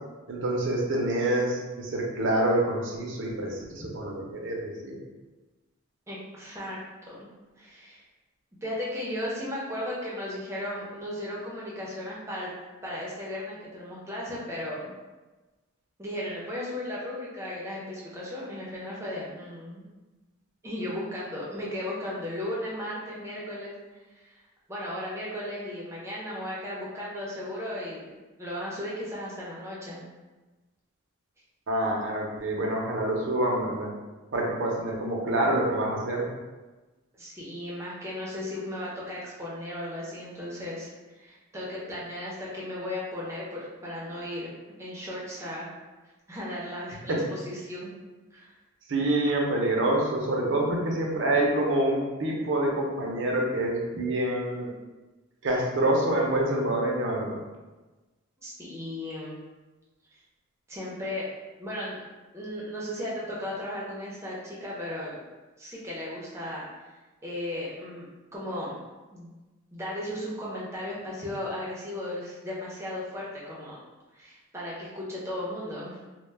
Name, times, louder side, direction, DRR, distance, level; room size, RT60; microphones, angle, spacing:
voice 1, 0.3-5.0 31.7-33.9 34.3-36.3 47.1-47.2 48.9-54.7 55.4-57.4, right 1 dB, 60° right, -1 dB, 0.5 m, -27 dB
voice 2, 6.1-6.8 7.1-7.3 7.6-8.0 8.6-12.5 12.8-14.9 16.0-19.8 20.6-24.4 24.7-30.0 37.2-44.5 44.8-45.7 46.3-47.9 48.3-48.5 58.4-59.4 60.1-60.2 60.7-61.3 61.6-62.0 62.3-65.2 65.6-66.9 67.2-68.1 68.3-68.8 69.1-69.3 69.7-73.8 74.1-76.0, left 1 dB, 15° right, -6 dB, 0.5 m, -36 dB
2.1 x 2.0 x 3.2 m, 1.2 s
head